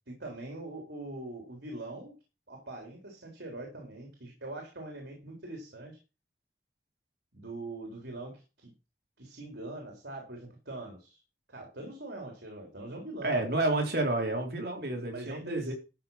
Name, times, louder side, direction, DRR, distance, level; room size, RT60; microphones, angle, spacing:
voice 1, 0.1-2.1 2.5-6.0 7.3-8.7 9.2-11.2 11.5-13.4 15.1-15.7, right 2 dB, 85° right, 1 dB, 3.7 m, -42 dB
voice 2, 13.2-15.7, right 2 dB, 65° right, 2 dB, 3.5 m, -30 dB
13.0 x 6.1 x 5.7 m, 0.30 s
head